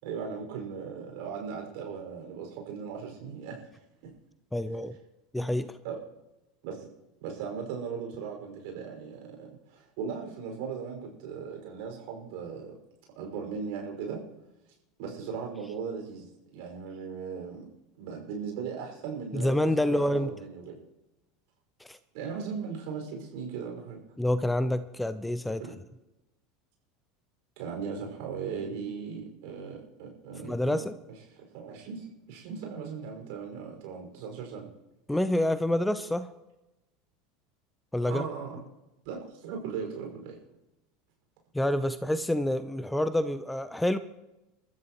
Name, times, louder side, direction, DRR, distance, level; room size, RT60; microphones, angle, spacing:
voice 1, 0.0-3.6 4.0-4.1 5.8-6.0 6.6-6.9 7.2-12.7 13.2-14.2 15.0-17.6 18.0-20.8 22.1-24.0 25.6-25.7 27.6-30.8 31.3-34.7 38.0-38.6 39.0-40.4, right 6 dB, 60° right, 1 dB, 5.6 m, -38 dB
voice 2, 4.5-5.0 5.3-5.8 19.3-20.3 21.9-22.0 24.2-25.6 30.5-30.9 35.1-36.3 37.9-38.2 41.5-44.0, left 1 dB, 5° left, 13 dB, 0.7 m, -27 dB
30.0 x 13.5 x 3.1 m, 0.98 s
figure-of-eight pair, 75°, 0 cm